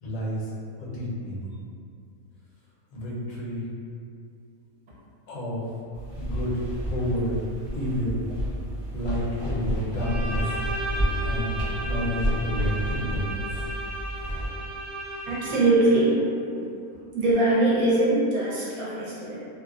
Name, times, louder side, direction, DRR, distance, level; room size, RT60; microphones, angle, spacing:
voice 1, 0.0-0.5 0.8-1.5 2.9-3.7 5.3-5.6 6.1-7.4 7.7-8.2 8.9-10.6 11.2-11.6 11.8-13.7, equal, 70° left, -7 dB, 1.1 m, -30 dB
sound 1, 5.9-14.5, equal, 25° left, 0.5 m, -30 dB
Bowed string instrument, 9.9-15.8, right 1 dB, 45° right, 1.1 m, -35 dB
voice 2, 15.3-16.1 17.1-19.4, right 2 dB, 75° right, -7 dB, 1.1 m, -22 dB
2.8 x 2.1 x 2.3 m, 2.4 s
omnidirectional pair, 1.6 m